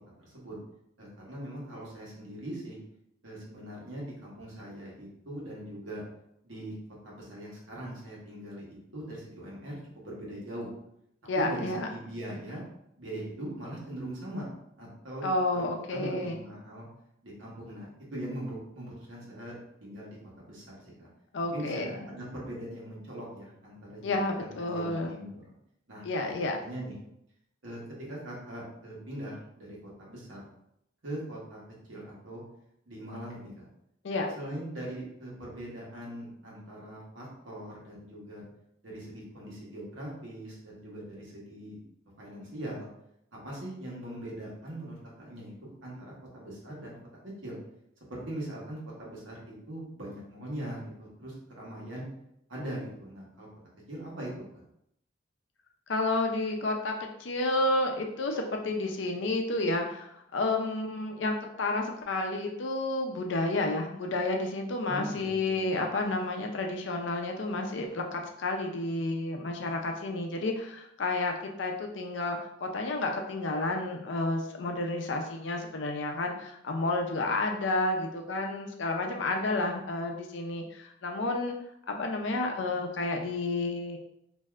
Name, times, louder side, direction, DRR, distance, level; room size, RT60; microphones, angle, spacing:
voice 1, 0.2-0.5 1.0-2.8 3.2-6.0 6.4-6.7 7.1-10.7 11.4-12.6 13.0-14.5 14.8-15.3 15.5-15.6 15.9-16.9 17.2-21.1 21.5-25.4 25.9-26.3 26.6-26.9 27.6-27.8 28.1-30.4 31.0-31.6 31.9-32.4 32.9-33.7 34.4-38.4 38.8-41.8 42.2-42.9 43.3-47.0 47.4-47.6 48.0-52.0 52.5-53.5 53.9-54.4 64.8-65.7, right 1 dB, 80° right, -4 dB, 1.1 m, -41 dB
voice 2, 11.3-11.9 15.2-16.4 21.3-21.9 24.0-25.1 26.0-26.6 34.0-34.3 55.9-81.6 81.9-84.0, left 2 dB, 65° left, 3 dB, 0.5 m, -30 dB
2.6 x 2.4 x 3.2 m, 0.78 s
head